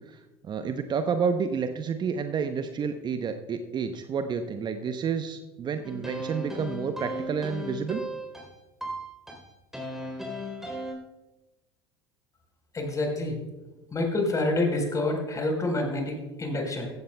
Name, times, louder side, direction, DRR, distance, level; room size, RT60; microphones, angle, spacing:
voice 1, 0.0-8.0, right 6 dB, 30° right, 8 dB, 0.8 m, -30 dB
sound 1, 5.8-10.9, equal, 5° right, 3.6 m, -36 dB
voice 2, 12.7-13.4 13.9-16.9, left 2 dB, 25° left, 2 dB, 4.1 m, -27 dB
15.5 x 15.0 x 2.3 m, 1.1 s
figure-of-eight pair, 70°, 14 cm